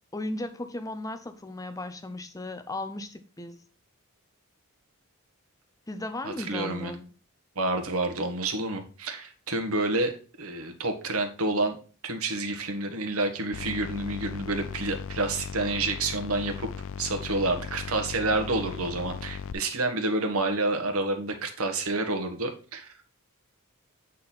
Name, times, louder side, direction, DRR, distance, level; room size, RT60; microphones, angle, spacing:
voice 1, 0.1-3.6 5.9-7.1, left 2 dB, 15° left, 0.6 m, -36 dB
voice 2, 6.2-6.9 7.5-11.8 12.0-16.7 17.0-22.9, right 2 dB, 75° right, 1.4 m, -29 dB
sound 1, 13.5-19.5, left 6 dB, 60° left, 0.3 m, -37 dB
8.6 x 4.0 x 4.2 m
head